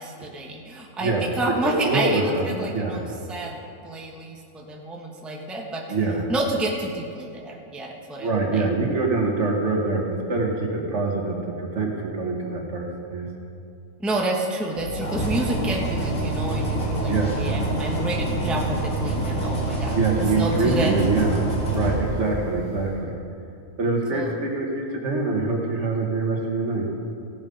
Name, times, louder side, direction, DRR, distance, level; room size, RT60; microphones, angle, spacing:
voice 1, 0.0-3.6 3.8-6.0 6.3-8.6 14.0-21.0 24.1-24.3, right 2 dB, ahead, -1 dB, 0.9 m, -29 dB
voice 2, 1.0-1.3 1.6-2.5 2.7-3.0 5.9-6.2 8.2-12.8 13.1-13.3 17.1-17.3 19.9-21.4 21.7-23.1 23.8-26.9, right 3 dB, 55° right, 0 dB, 1.7 m, -24 dB
sound 1, 14.8-22.7, right 1 dB, 70° left, 2.8 m, -26 dB
16.0 x 7.2 x 5.2 m, 2.6 s
omnidirectional pair, 1.4 m